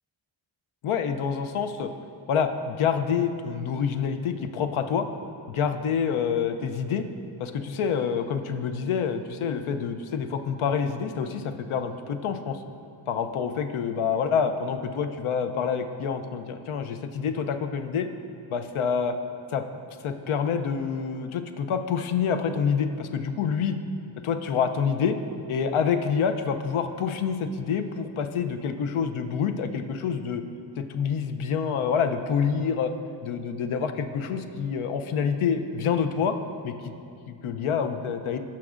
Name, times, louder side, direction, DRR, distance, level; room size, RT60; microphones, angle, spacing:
voice 1, 0.8-1.9 2.3-5.1 5.5-7.1 7.4-12.6 13.1-18.1 18.5-19.2 19.5-19.6 20.0-23.8 24.2-25.2 25.5-30.4 30.8-32.9 33.2-36.4 36.6-36.7 37.3-38.4, left 6 dB, 85° left, 8 dB, 0.6 m, -27 dB
16.0 x 5.9 x 2.5 m, 2.5 s
cardioid pair, 85°, 48 cm